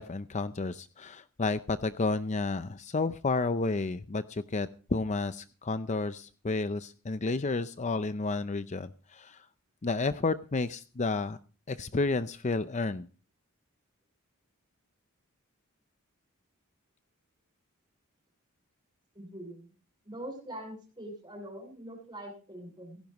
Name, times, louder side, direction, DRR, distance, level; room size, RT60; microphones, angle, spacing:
voice 1, 0.0-9.5 9.8-11.4 11.7-13.1, left 3 dB, 35° left, 12 dB, 0.6 m, -31 dB
voice 2, 19.1-19.7 20.0-23.0, right 1 dB, 20° right, 2 dB, 7.9 m, -43 dB
17.0 x 15.5 x 3.0 m, 0.36 s
head